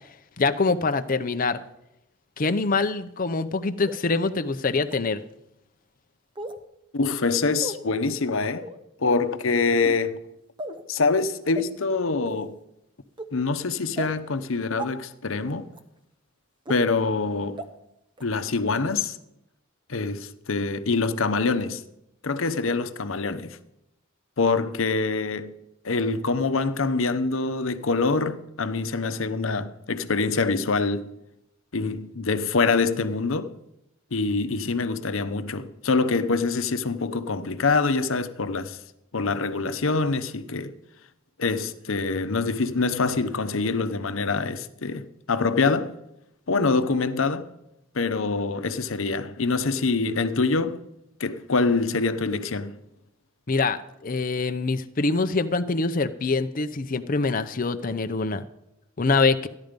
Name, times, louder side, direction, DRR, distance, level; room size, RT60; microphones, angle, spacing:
voice 1, 0.4-1.6 2.4-5.2 53.5-58.4 59.0-59.5, left 3 dB, 40° left, 0.6 m, -24 dB
sound 1, 3.9-4.0 4.9-5.0 6.4-6.6 7.6-7.8 8.6-8.8 9.7-10.0 10.6-10.8 11.5-11.6 12.3-12.5 13.2-13.3 14.0-14.1 14.8-14.9 15.7-15.8 16.7-16.8 17.6-17.7 18.2-18.3, right 2 dB, 25° right, 0.9 m, -35 dB
voice 2, 6.9-8.6 9.0-10.2 10.9-12.5 13.3-15.7 16.7-17.6 18.2-19.2 19.9-21.8 22.2-23.6 24.4-25.5 25.8-31.1 31.7-33.5 34.1-38.8 39.1-40.7 41.4-45.9 46.5-47.5 47.9-50.8 51.2-52.8, left 4 dB, 75° left, 0.9 m, -25 dB
14.5 x 10.5 x 5.2 m
head